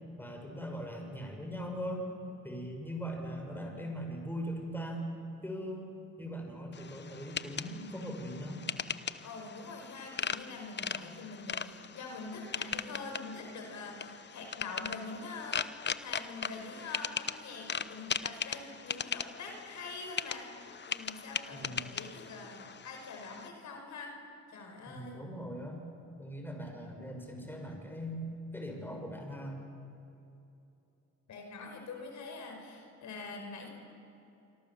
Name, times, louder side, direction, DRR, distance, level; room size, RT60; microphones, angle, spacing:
voice 1, 0.2-2.1 2.4-5.0 5.4-5.9 6.2-8.6 21.5-21.9 24.9-25.8 26.2-28.2 28.5-29.7, equal, 5° left, 2 dB, 6.0 m, -40 dB
sound 1, 6.7-23.5, left 7 dB, 35° left, 1.0 m, -39 dB
voice 2, 9.2-20.5 20.9-24.2 24.5-25.2 31.3-33.7, left 3 dB, 70° left, 3 dB, 5.2 m, -44 dB
26.5 x 25.0 x 7.3 m, 2.8 s
cardioid pair, 90°, 30 cm